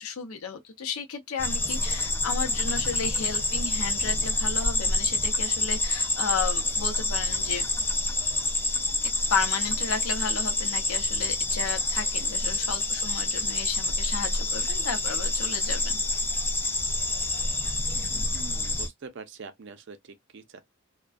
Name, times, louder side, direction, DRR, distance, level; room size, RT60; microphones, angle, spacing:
voice 1, 0.0-7.7 9.3-16.0, left 5 dB, 85° left, 0.6 m, -33 dB
sound 1, 1.4-18.9, left 2 dB, 10° left, 0.3 m, -27 dB
voice 2, 18.3-20.6, right 5 dB, 55° right, 0.5 m, -44 dB
2.3 x 2.2 x 2.4 m
head